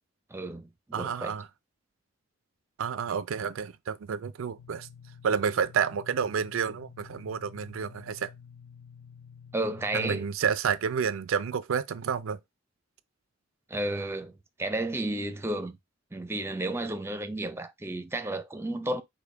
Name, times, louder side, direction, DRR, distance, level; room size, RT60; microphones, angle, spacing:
voice 1, 0.3-1.3 9.5-10.3 13.7-15.8 16.1-19.0, right 1 dB, 10° right, 0.5 m, -32 dB
voice 2, 0.9-1.5 2.8-4.9 5.2-8.3 9.9-12.4, right 7 dB, 85° right, 0.4 m, -30 dB
sound 1, 4.6-10.2, left 7 dB, 85° left, 0.6 m, -50 dB
5.2 x 2.2 x 4.6 m
head